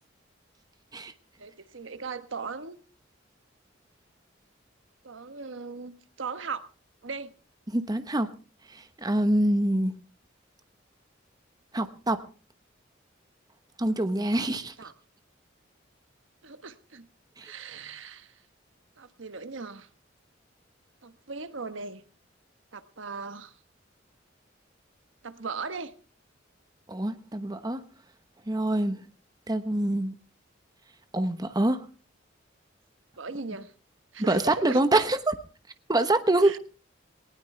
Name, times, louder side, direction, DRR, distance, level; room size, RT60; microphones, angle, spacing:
voice 1, 1.4-2.8 5.0-6.6 7.0-7.3 14.3-14.5 14.8-14.9 16.4-17.1 17.4-18.4 19.0-19.9 21.0-22.0 22.7-23.6 25.2-25.9 33.2-33.7 34.1-35.1 36.4-36.6, right 4 dB, 80° right, 11 dB, 1.1 m, -38 dB
voice 2, 7.7-8.3 8.7-9.9 11.7-12.2 13.8-14.7 17.4-17.5 26.9-27.8 28.5-29.0 29.5-30.1 31.1-31.8 34.3-35.3 35.9-36.6, right 1 dB, 20° right, 10 dB, 1.0 m, -25 dB
19.5 x 17.5 x 3.3 m, 0.36 s
head